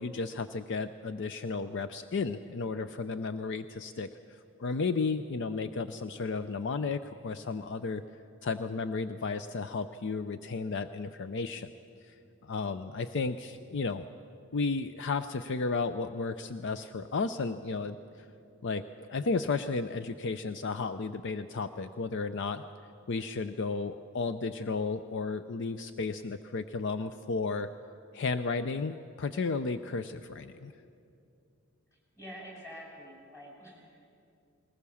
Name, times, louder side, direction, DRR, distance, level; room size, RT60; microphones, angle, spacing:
voice 1, 0.0-8.0 8.4-11.7 12.0-12.1 12.4-14.1 14.5-18.3 18.6-22.6 23.1-27.7 28.1-30.7, left 4 dB, 55° left, 11 dB, 0.5 m, -33 dB
voice 2, 31.9-34.1, equal, 15° left, -2 dB, 5.9 m, -47 dB
20.5 x 19.5 x 7.1 m, 2.5 s
head